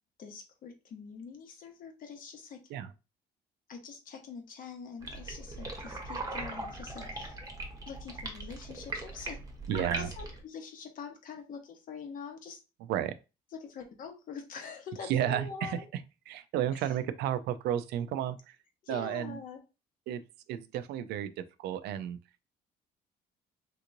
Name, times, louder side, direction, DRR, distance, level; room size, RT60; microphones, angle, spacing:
voice 1, 0.2-2.6 3.7-7.4 7.9-9.4 9.7-12.6 13.6-15.9 16.7-16.9 18.8-19.6, left 5 dB, 55° left, 1.0 m, -44 dB
sound 1, 5.0-10.4, right 2 dB, 20° right, 1.0 m, -40 dB
voice 2, 9.7-10.1 12.9-13.2 15.1-15.8 16.3-18.6 18.9-19.4 20.1-20.2 20.5-22.2, right 10 dB, 80° right, 0.4 m, -32 dB
3.4 x 2.9 x 2.6 m
cardioid pair, 110°, 17 cm